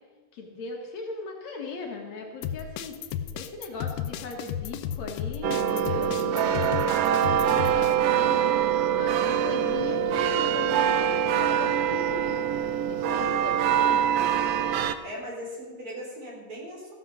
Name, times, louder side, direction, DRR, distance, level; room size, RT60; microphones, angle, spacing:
voice 1, 0.3-3.0 3.3-7.0 7.5-8.6 8.9-12.4 12.9-14.0, left 4 dB, 65° left, 1 dB, 2.7 m, -38 dB
sound 1, 2.4-7.9, left 9 dB, 90° left, 1.4 m, -33 dB
sound 2, 5.4-14.9, right 9 dB, 85° right, 1.4 m, -24 dB
voice 2, 15.0-16.9, equal, 45° right, -3 dB, 4.3 m, -38 dB
15.0 x 7.9 x 6.2 m, 1.3 s
omnidirectional pair, 3.6 m